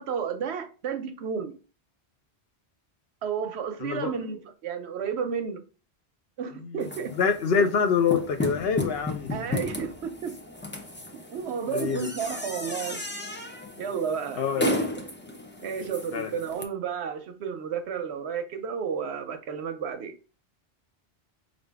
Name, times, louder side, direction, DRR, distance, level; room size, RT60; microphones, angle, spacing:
voice 1, 0.0-1.5 3.2-5.6 6.4-7.1 9.3-10.3 11.3-13.0 13.8-14.8 15.6-20.1, right 7 dB, 80° right, 0.9 m, -32 dB
voice 2, 3.8-4.1 6.6-6.8 7.2-9.6 11.7-12.1 14.4-14.7 16.1-16.3, left 6 dB, 70° left, 0.9 m, -26 dB
sound 1, 6.8-16.6, left 2 dB, 15° left, 0.4 m, -34 dB
5.2 x 2.5 x 3.4 m
omnidirectional pair, 1.1 m